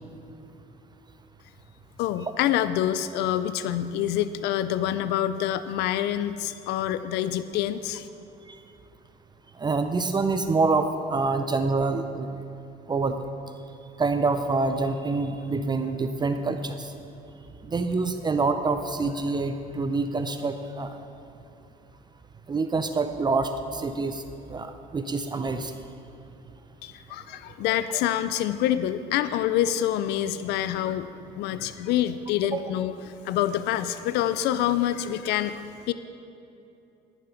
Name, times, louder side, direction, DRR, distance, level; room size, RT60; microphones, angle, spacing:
voice 1, 2.0-8.1 26.8-35.9, left 11 dB, 85° left, 13 dB, 0.4 m, -27 dB
voice 2, 9.6-12.5 12.9-13.3 14.0-16.9 17.6-21.0 22.5-24.2 24.5-25.8 32.5-32.6, right 3 dB, 25° right, 8 dB, 0.5 m, -26 dB
13.0 x 7.2 x 5.9 m, 2.8 s
cardioid pair, 110°, 17 cm